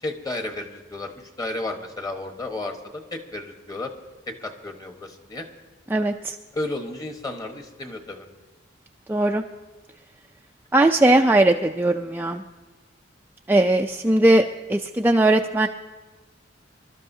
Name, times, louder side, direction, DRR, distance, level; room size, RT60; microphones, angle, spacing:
voice 1, 0.0-3.9 4.3-5.5 6.5-8.3, left 2 dB, 20° left, 5 dB, 1.2 m, -33 dB
voice 2, 5.9-6.4 9.1-9.4 10.7-12.4 13.5-14.4 14.7-15.7, right 1 dB, 10° right, 3 dB, 0.4 m, -19 dB
26.0 x 12.5 x 2.7 m, 1.3 s
head